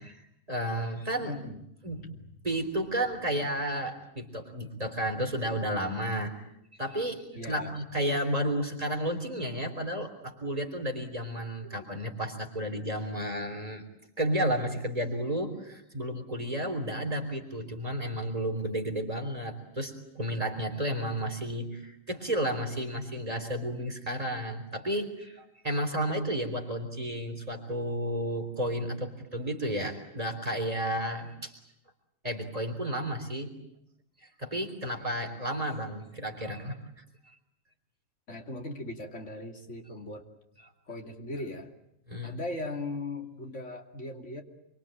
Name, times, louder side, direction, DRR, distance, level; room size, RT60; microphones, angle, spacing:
voice 1, 0.0-1.4 1.8-2.1 2.4-6.3 6.8-13.8 14.2-31.6 32.2-33.5 34.4-36.8 40.6-40.7 42.1-42.4, right 1 dB, 30° right, 4 dB, 3.7 m, -32 dB
voice 2, 1.2-1.6 7.3-7.8 38.3-40.2 40.9-41.7 42.2-44.4, left 2 dB, 65° left, 3 dB, 3.1 m, -38 dB
26.5 x 24.5 x 9.0 m, 0.77 s
omnidirectional pair, 1.3 m